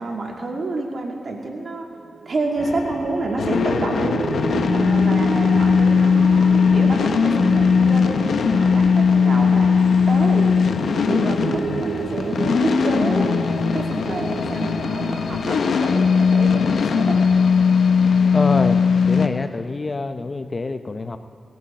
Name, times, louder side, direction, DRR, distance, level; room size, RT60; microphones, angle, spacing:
voice 1, 0.0-1.9 2.3-4.2 4.7-9.7 10.1-10.7 11.1-13.4 13.7-17.2, right 2 dB, 55° right, 0 dB, 2.3 m, -28 dB
sound 1, 2.1-17.1, right 5 dB, 75° right, 0.6 m, -31 dB
sound 2, 2.6-19.3, left 6 dB, 85° left, 0.7 m, -19 dB
sound 3, 10.7-16.6, left 1 dB, 60° left, 3.2 m, -46 dB
voice 2, 18.3-21.2, left 3 dB, 35° left, 9 dB, 0.7 m, -26 dB
18.0 x 14.5 x 4.3 m, 2.3 s
wide cardioid pair, 90°, 0 cm